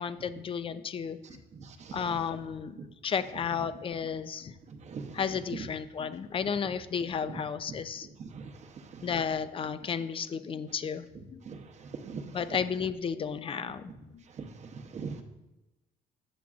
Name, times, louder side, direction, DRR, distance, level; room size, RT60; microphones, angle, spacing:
voice 1, 0.0-1.2 1.9-2.7 3.0-4.5 5.1-8.1 9.0-11.4 12.3-13.8 14.1-14.2, left 6 dB, 30° left, 13 dB, 0.4 m, -33 dB
voice 2, 1.2-2.3 2.8-2.9 4.7-5.7 7.3-7.4 8.0-9.1 11.4-12.6 14.3-15.2, right 5 dB, 45° right, 5 dB, 0.8 m, -42 dB
8.6 x 5.9 x 2.4 m, 0.98 s
cardioid pair, 110°, 17 cm